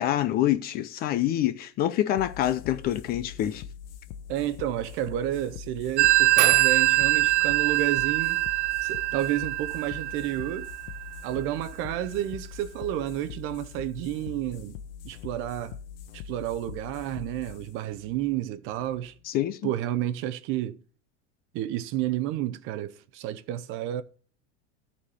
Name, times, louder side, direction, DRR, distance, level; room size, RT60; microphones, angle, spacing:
voice 1, 0.0-3.6 19.2-19.7, left 12 dB, 30° left, 0.5 m, -26 dB
sound 1, 2.2-19.2, left 8 dB, 60° left, 1.0 m, -43 dB
voice 2, 4.3-8.4 8.8-10.7 11.2-14.8 15.0-15.8 16.1-19.2 19.6-20.8 21.5-24.0, right 13 dB, 40° right, 0.7 m, -31 dB
Telephone, 6.0-11.3, right 20 dB, 85° right, 0.7 m, -23 dB
13.0 x 4.3 x 6.8 m
supercardioid pair, 160°, 33 cm